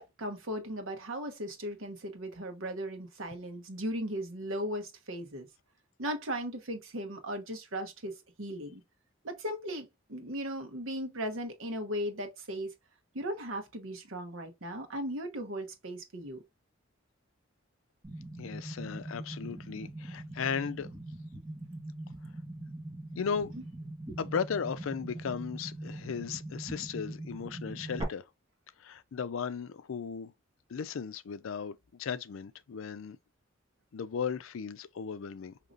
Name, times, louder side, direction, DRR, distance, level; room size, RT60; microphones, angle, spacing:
voice 1, 0.0-5.5 6.0-8.8 9.2-12.7 13.1-16.4, equal, 80° right, 1.1 m, -37 dB
sound 1, 18.0-28.0, right 1 dB, 20° right, 1.4 m, -42 dB
voice 2, 18.4-20.9 23.2-23.5 24.2-28.2 28.8-30.3 30.7-33.2 33.9-35.6, left 6 dB, 75° left, 0.4 m, -36 dB
5.1 x 2.9 x 2.4 m
head